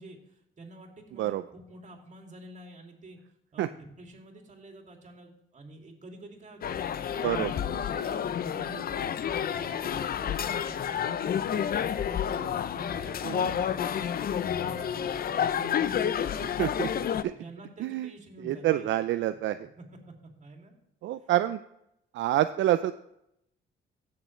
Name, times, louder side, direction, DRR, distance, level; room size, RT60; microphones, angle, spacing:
voice 1, 0.0-3.2 3.5-11.7 12.1-16.8 17.3-18.9 19.8-20.8 21.2-21.3, right 2 dB, 35° right, 2 dB, 2.6 m, -48 dB
sound 1, 6.6-17.2, left 8 dB, 50° left, 0.5 m, -30 dB
voice 2, 18.4-19.6 21.0-21.6 22.1-22.9, right 13 dB, 70° right, 11 dB, 0.4 m, -27 dB
15.5 x 6.7 x 3.2 m, 0.79 s
cardioid pair, 90°, 20 cm